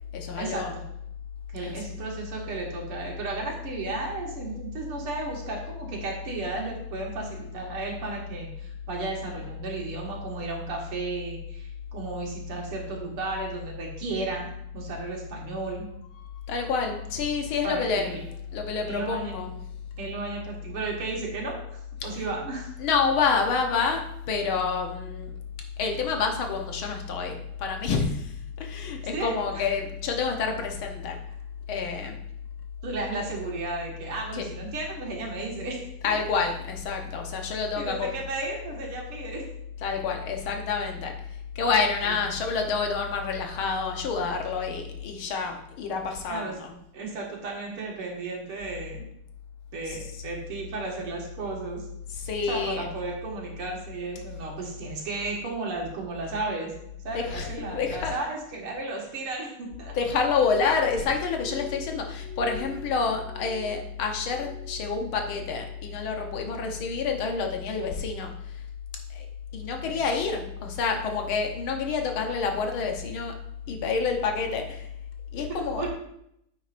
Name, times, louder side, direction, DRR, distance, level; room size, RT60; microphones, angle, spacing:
voice 1, 0.1-0.7 1.6-1.8 16.2-18.2 18.5-19.6 22.0-22.2 22.8-25.3 25.8-31.2 31.7-32.2 34.3-34.5 36.0-38.2 39.8-46.7 49.9-50.0 52.1-52.9 57.1-58.1 59.9-68.6 69.1-69.3 69.5-73.3 73.7-74.9 75.3-75.8, left 5 dB, 75° left, 3 dB, 1.8 m, -28 dB
voice 2, 1.5-15.9 17.6-18.2 18.9-19.3 20.0-22.7 29.1-29.7 32.8-36.2 37.8-39.5 42.0-42.1 46.3-46.5 46.9-49.0 49.7-51.9 52.5-56.7 57.0-59.9 69.8-70.0 75.5-75.9, right 3 dB, 80° right, -1 dB, 2.6 m, -34 dB
Glass, 61.1-64.9 65.2-65.9 66.3-66.8 67.4-67.7, left 5 dB, 60° right, 1.7 m, -46 dB
9.4 x 7.8 x 2.5 m, 0.75 s
omnidirectional pair, 2.4 m